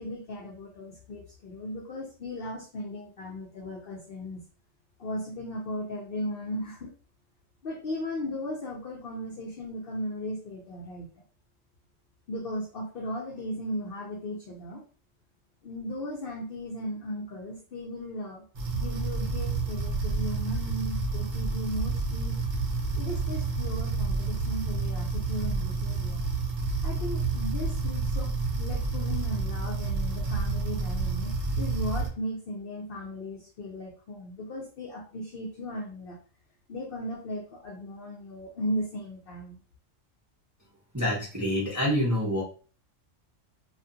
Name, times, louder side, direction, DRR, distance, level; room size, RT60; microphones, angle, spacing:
voice 1, 0.0-4.4 5.0-6.9 7.6-11.1 12.3-14.8 15.6-18.4 18.7-22.4 23.0-26.2 26.8-28.3 28.6-36.2 36.7-39.6, left 1 dB, 60° left, -2 dB, 0.6 m, -36 dB
sound 1, 18.5-32.1, right 3 dB, 60° right, 0.7 m, -29 dB
voice 2, 40.9-42.4, equal, 20° right, -5 dB, 0.6 m, -26 dB
2.4 x 2.3 x 2.6 m, 0.38 s
omnidirectional pair, 1.3 m